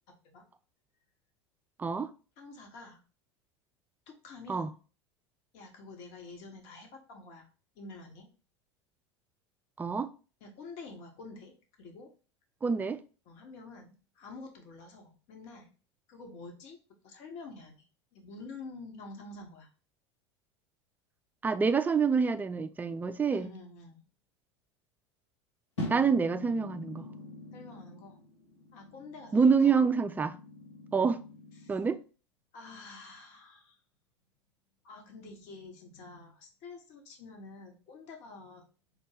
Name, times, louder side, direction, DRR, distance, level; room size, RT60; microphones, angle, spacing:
voice 1, 1.8-2.1 4.5-4.7 9.8-10.1 12.6-13.0 21.4-23.5 25.9-27.1 29.3-30.4 30.9-31.2 31.7-32.0, right 5 dB, 10° right, 0.3 m, -26 dB
voice 2, 2.4-3.0 4.1-4.8 5.5-7.5 7.8-8.3 10.4-12.1 13.3-15.7 16.1-16.8 17.0-17.9 18.1-19.7 23.3-24.0 27.5-28.2 28.7-29.8 31.6-31.8 32.5-33.8 34.8-38.6, left 3 dB, 55° left, 1.0 m, -48 dB
sound 1, 25.8-32.0, left 1 dB, 90° left, 1.2 m, -44 dB
5.1 x 2.1 x 3.3 m
hypercardioid pair, 80°, 15 cm